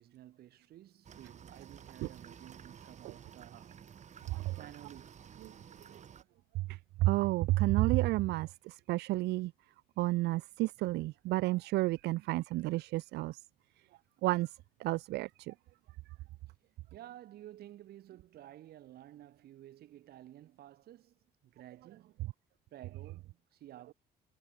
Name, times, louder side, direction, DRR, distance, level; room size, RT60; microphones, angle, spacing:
voice 1, 0.0-4.1 4.6-5.3 16.9-22.2 22.7-23.9, right 13 dB, 65° right, 6.6 m, -53 dB
sound 1, 1.0-6.2, right 8 dB, 45° right, 4.8 m, -53 dB
voice 2, 6.5-9.5 10.0-13.4 14.2-15.5, right 18 dB, 85° right, 1.4 m, -31 dB
cardioid pair, 110°, 17 cm